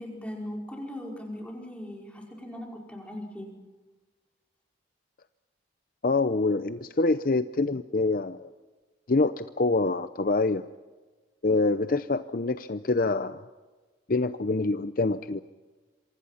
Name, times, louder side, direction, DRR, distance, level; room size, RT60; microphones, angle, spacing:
voice 1, 0.0-3.5, left 1 dB, 5° left, 0 dB, 5.1 m, -39 dB
voice 2, 6.0-8.5 9.1-10.6 11.4-13.4 14.1-15.4, left 3 dB, 50° left, 11 dB, 0.7 m, -26 dB
27.0 x 25.0 x 5.7 m, 1.3 s
head